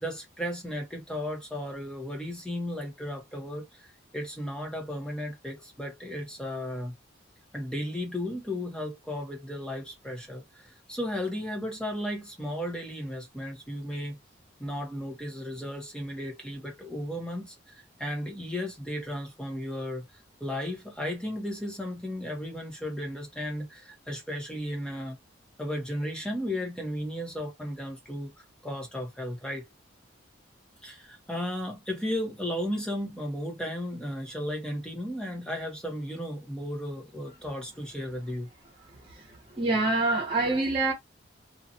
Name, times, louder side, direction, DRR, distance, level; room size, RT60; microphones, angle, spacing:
voice 1, 0.0-6.9 7.5-14.2 14.6-20.0 20.4-25.2 25.6-29.7 30.8-38.5, left 1 dB, 5° left, 0.9 m, -35 dB
voice 2, 38.9-40.9, right 2 dB, 30° right, 1.0 m, -27 dB
2.6 x 2.3 x 2.7 m
head